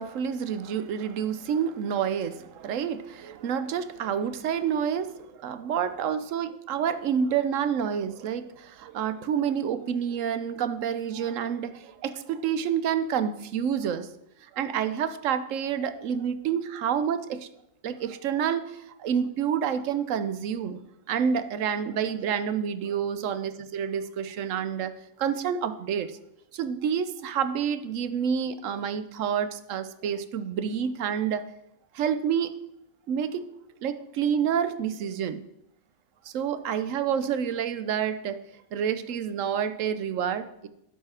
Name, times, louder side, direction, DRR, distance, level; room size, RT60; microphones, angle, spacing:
voice 1, 0.0-14.1 14.4-17.5 17.8-20.8 21.1-26.2 26.5-31.5 31.9-32.5 33.1-33.5 33.8-35.4 36.2-38.4 38.7-40.7, right 8 dB, 85° right, 12 dB, 1.1 m, -28 dB
12.0 x 5.5 x 4.9 m, 0.80 s
omnidirectional pair, 1.3 m